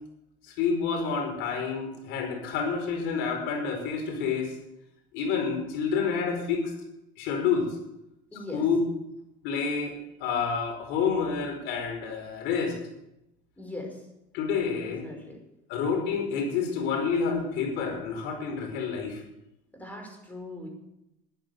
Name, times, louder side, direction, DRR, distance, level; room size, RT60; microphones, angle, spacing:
voice 1, 0.4-4.5 5.1-6.7 7.2-7.7 8.5-8.8 9.4-12.7 14.3-15.1 15.7-19.2, left 6 dB, 75° left, 3 dB, 5.1 m, -28 dB
voice 2, 8.3-8.6 13.6-14.0 14.8-15.4 19.7-20.7, left 1 dB, 10° left, 2 dB, 5.4 m, -40 dB
13.0 x 9.8 x 8.0 m, 0.88 s
supercardioid pair, 110°, 19 cm